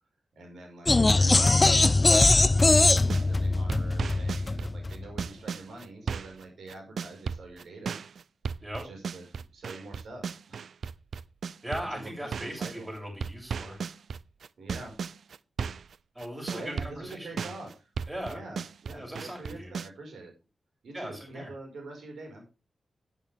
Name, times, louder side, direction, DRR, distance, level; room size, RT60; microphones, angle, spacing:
voice 1, 0.4-8.0 8.8-9.3 9.5-10.7 11.9-12.9 14.6-15.0 16.5-17.9 18.2-20.3 20.8-22.5, right 2 dB, 90° right, 2 dB, 5.4 m, -45 dB
sound 1, 0.9-5.0, left 2 dB, 25° left, 0.6 m, -21 dB
sound 2, 3.0-3.3 3.7-12.8 13.2-15.9 16.2-19.9, right 6 dB, 75° right, 0.5 m, -35 dB
voice 2, 11.6-13.9 16.1-17.5 18.1-18.4 18.9-19.7 20.9-21.5, equal, 15° right, 0 dB, 7.6 m, -39 dB
12.5 x 11.0 x 3.6 m, 0.28 s
wide cardioid pair, 120°, 0 cm